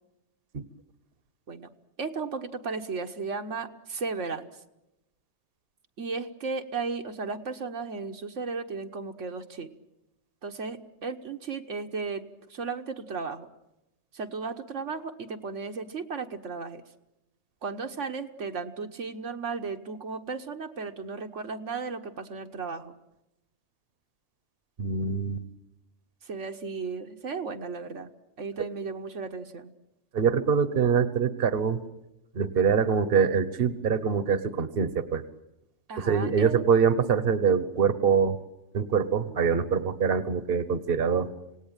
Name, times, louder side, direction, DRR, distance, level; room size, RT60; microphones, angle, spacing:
voice 1, 2.0-4.5 6.0-9.7 10.4-13.5 14.1-16.8 17.6-22.9 26.2-28.1 28.4-29.7 35.9-36.6, right 4 dB, 80° right, 5 dB, 1.6 m, -35 dB
voice 2, 24.8-25.5 30.1-31.8 32.3-35.2 36.0-38.4 38.7-41.3, right 6 dB, 50° right, 13 dB, 1.2 m, -24 dB
26.5 x 18.0 x 9.0 m, 0.92 s
omnidirectional pair, 1.2 m